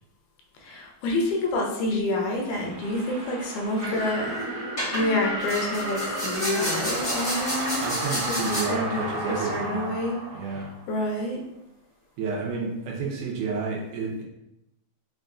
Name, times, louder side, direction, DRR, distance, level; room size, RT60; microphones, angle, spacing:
voice 1, 0.6-7.9 8.3-10.2 10.9-11.4, left 1 dB, 80° left, 0 dB, 2.0 m, -28 dB
sound 1, 2.2-11.1, right 1 dB, 65° right, 1.5 m, -33 dB
sound 2, 3.6-3.9 4.8-5.1 5.4-8.6, equal, 50° left, 0.6 m, -31 dB
voice 2, 7.8-10.0 10.3-10.7 12.2-14.2, right 4 dB, 90° right, -1 dB, 2.2 m, -31 dB
5.7 x 2.3 x 2.5 m, 0.87 s
omnidirectional pair, 3.6 m